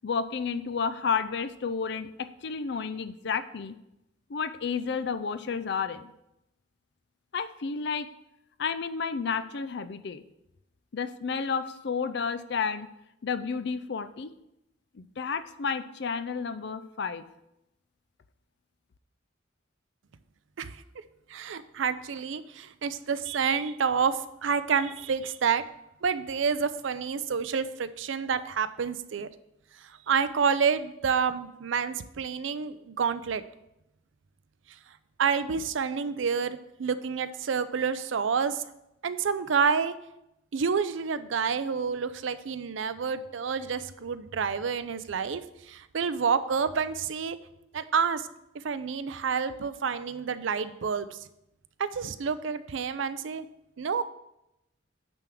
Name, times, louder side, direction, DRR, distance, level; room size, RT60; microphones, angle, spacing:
voice 1, 0.0-3.8 4.3-6.1 7.3-8.1 8.6-10.2 10.9-12.9 13.2-14.3 14.9-17.2, left 5 dB, 60° left, 12 dB, 0.5 m, -31 dB
voice 2, 21.3-25.6 26.0-29.3 30.1-33.4 35.2-38.6 39.0-39.9 40.5-45.4 45.7-47.4 47.7-48.3 48.6-51.2 51.8-53.5 53.8-54.0, right 6 dB, 75° right, 13 dB, 0.5 m, -28 dB
9.0 x 3.6 x 6.0 m, 0.85 s
head